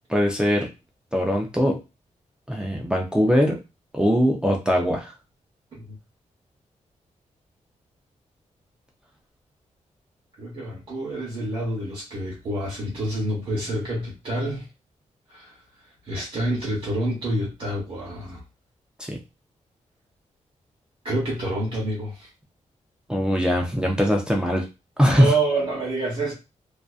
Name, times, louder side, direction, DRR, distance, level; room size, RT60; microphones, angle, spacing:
voice 1, 0.1-0.7 1.1-1.8 2.5-3.6 3.9-5.1 19.0-19.2 23.1-24.7 25.0-25.3, equal, 5° right, 0 dB, 0.3 m, -21 dB
voice 2, 10.4-14.7 15.3-15.5 16.1-18.4 21.0-22.3 25.1-26.3, right 1 dB, 40° right, -4 dB, 0.8 m, -28 dB
2.5 x 2.2 x 2.3 m, 0.26 s
wide cardioid pair, 180°, 13 cm